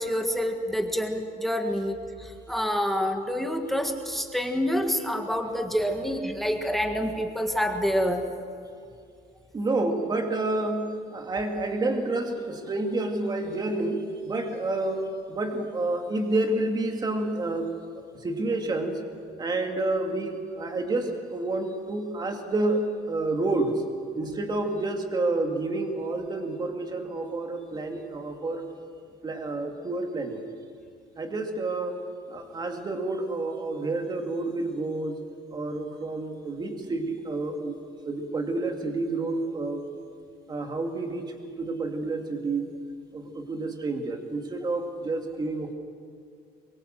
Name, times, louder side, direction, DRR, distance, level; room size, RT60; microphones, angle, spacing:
voice 1, 0.0-8.2, equal, ahead, 4 dB, 1.7 m, -27 dB
voice 2, 9.5-19.0 19.4-23.8 24.1-28.7 29.2-30.4 31.2-32.0 32.3-35.2 35.5-37.7 38.1-39.8 40.5-42.7 43.1-45.7, right 2 dB, 25° right, 3 dB, 2.6 m, -29 dB
23.5 x 22.0 x 7.8 m, 2.3 s
cardioid pair, 150°, 17 cm